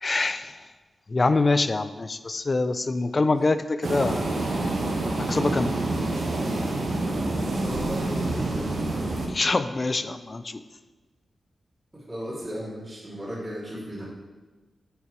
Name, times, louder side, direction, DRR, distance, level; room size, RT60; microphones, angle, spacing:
voice 1, 0.0-0.7 1.1-4.3 5.2-5.7 9.2-10.6, left 3 dB, 35° left, 12 dB, 0.3 m, -25 dB
sound 1, 3.8-9.3, right 2 dB, 65° right, 1.1 m, -27 dB
voice 2, 6.9-8.7 11.9-14.0, equal, 20° right, -8 dB, 2.1 m, -36 dB
6.6 x 4.7 x 4.5 m, 1.2 s
wide cardioid pair, 95°, 0 cm